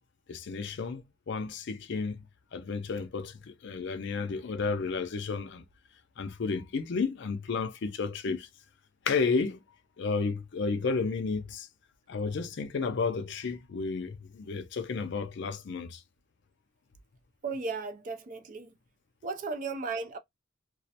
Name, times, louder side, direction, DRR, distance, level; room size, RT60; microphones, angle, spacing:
voice 1, 0.3-2.2 2.5-5.6 6.2-8.5 9.1-9.6 10.0-11.7 12.1-16.0, left 4 dB, 60° left, 0.5 m, -32 dB
voice 2, 17.4-18.7 19.2-20.2, right 4 dB, 40° right, 0.4 m, -35 dB
2.3 x 2.1 x 2.7 m
head